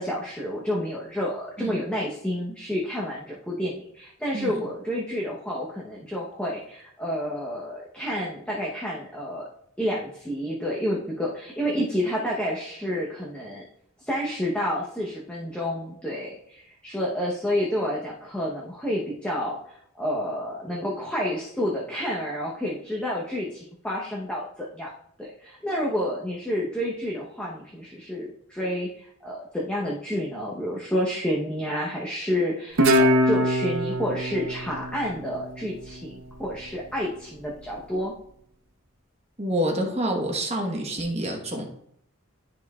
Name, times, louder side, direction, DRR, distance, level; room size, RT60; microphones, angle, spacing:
voice 1, 0.0-9.5 9.8-13.6 14.0-19.6 19.9-24.9 25.2-38.1, equal, 5° left, -4 dB, 0.8 m, -29 dB
Guitar, 32.8-36.0, equal, 60° right, 0.7 m, -23 dB
voice 2, 39.4-41.6, equal, 30° right, 1 dB, 1.1 m, -27 dB
12.5 x 4.3 x 2.3 m, 0.72 s
head